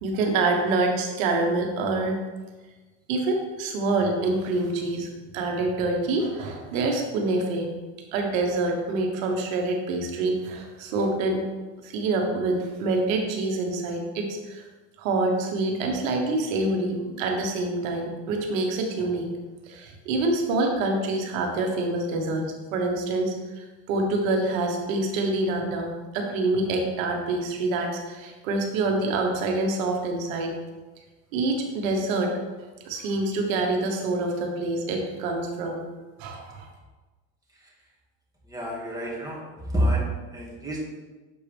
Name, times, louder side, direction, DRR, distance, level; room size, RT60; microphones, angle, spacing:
voice 1, 0.0-2.2 3.1-5.1 5.3-7.7 8.1-11.4 11.8-14.6 15.0-19.3 19.7-30.5 31.3-32.3 32.8-35.8 36.2-36.7, right 2 dB, 85° right, 2 dB, 1.2 m, -26 dB
voice 2, 38.5-39.4 39.7-40.8, right 1 dB, 10° right, -4 dB, 1.9 m, -27 dB
7.1 x 4.7 x 3.4 m, 1.2 s
supercardioid pair, 100°, 39 cm